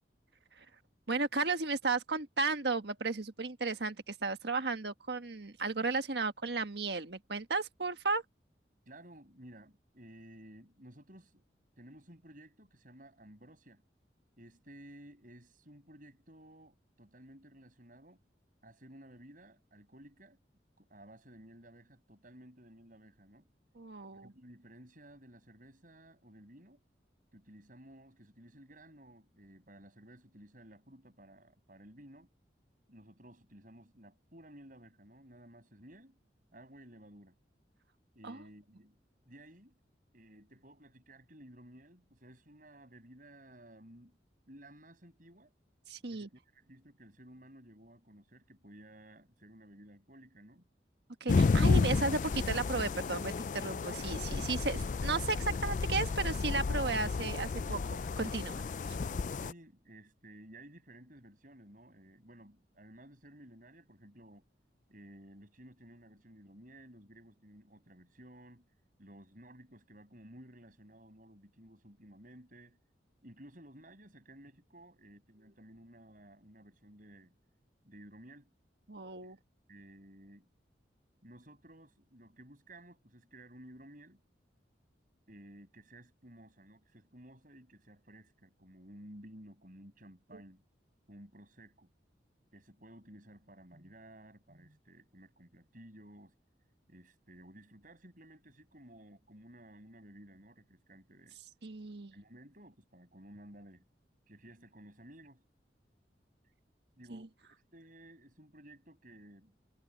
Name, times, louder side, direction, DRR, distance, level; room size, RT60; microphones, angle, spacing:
voice 1, 1.1-8.2 23.7-24.3 38.2-38.4 45.9-46.3 51.2-58.6 58.9-59.0 78.9-79.4 101.6-102.1 107.1-107.3, right 3 dB, 65° right, 1.5 m, -34 dB
voice 2, 8.9-11.4 11.8-13.8 14.4-18.2 18.6-20.4 20.8-23.5 24.1-26.8 27.3-32.3 32.9-36.2 36.5-37.4 38.1-39.0 39.3-39.8 40.1-44.2 44.5-45.5 46.1-50.7 59.4-64.5 64.9-68.7 69.0-72.8 73.2-77.4 77.8-78.5 79.2-79.3 79.7-80.5 81.2-84.2 85.3-90.6 91.1-91.9 92.5-96.4 96.9-101.4 102.1-103.8 104.3-105.4 107.0-109.6, right 1 dB, 50° right, 7.9 m, -55 dB
sound 1, 51.3-59.5, left 4 dB, 45° left, 0.4 m, -31 dB
head